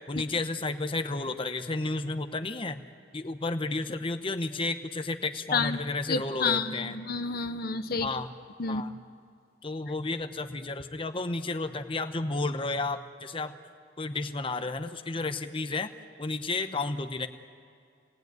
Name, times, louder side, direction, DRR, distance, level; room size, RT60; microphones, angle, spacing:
voice 1, 0.1-2.8 3.1-7.0 8.0-8.3 8.7-9.0 9.6-13.5 14.0-15.9 16.2-17.3, left 3 dB, 30° left, 8 dB, 0.9 m, -32 dB
voice 2, 6.1-8.1 8.6-8.8, left 4 dB, 55° left, 10 dB, 0.9 m, -29 dB
26.5 x 19.0 x 9.4 m, 2.3 s
head